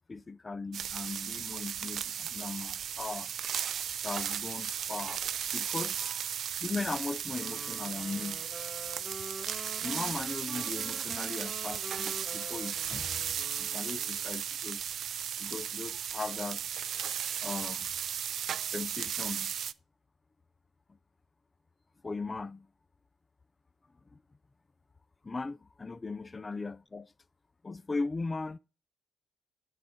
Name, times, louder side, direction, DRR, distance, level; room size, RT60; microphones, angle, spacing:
voice 1, 0.1-3.3 4.0-5.2 5.5-6.3 6.6-8.4 9.8-13.3 13.6-14.8 15.4-16.6 17.4-17.9 18.7-19.5 22.0-22.7 24.1-24.2 25.2-27.1 27.6-28.6, left 3 dB, 25° left, 0.4 m, -38 dB
sound 1, 0.7-19.7, right 9 dB, 65° right, 0.3 m, -35 dB
sound 2, 7.4-14.3, right 2 dB, 15° right, 1.3 m, -46 dB
9.3 x 4.0 x 5.1 m
cardioid pair, 90°, 0 cm